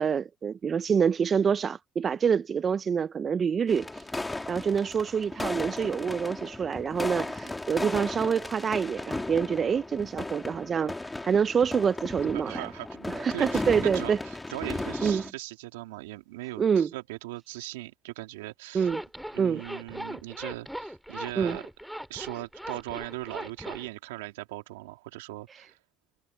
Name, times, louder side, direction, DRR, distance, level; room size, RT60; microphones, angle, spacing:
voice 1, 0.0-4.0 4.5-10.9 11.2-12.7 13.1-14.2 15.0-15.2 16.6-16.9 18.7-19.0 19.4-19.6 21.4-21.6, right 7 dB, 40° right, 0.5 m, -26 dB
sound 1, 3.7-15.3, left 2 dB, 15° left, 2.8 m, -35 dB
voice 2, 12.3-18.9 19.3-21.6 22.1-25.8, right 19 dB, 90° right, 2.9 m, -39 dB
Zipper (clothing), 18.8-23.9, equal, ahead, 2.6 m, -39 dB
hypercardioid pair, 70°, 0 cm